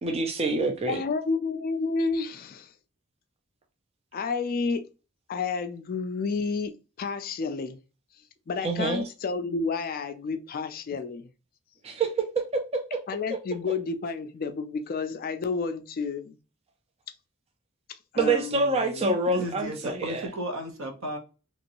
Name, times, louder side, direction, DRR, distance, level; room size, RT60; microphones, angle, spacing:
voice 1, 0.0-1.0 8.6-9.0 11.8-13.0 18.2-20.3, right 3 dB, 30° right, 0.4 m, -26 dB
voice 2, 0.9-2.7 4.1-4.9 5.3-7.8 8.5-11.2 13.1-16.4 18.1-19.1, left 4 dB, 40° left, 0.3 m, -30 dB
voice 3, 19.0-21.2, right 1 dB, 65° right, 0.8 m, -34 dB
3.0 x 2.6 x 2.9 m
head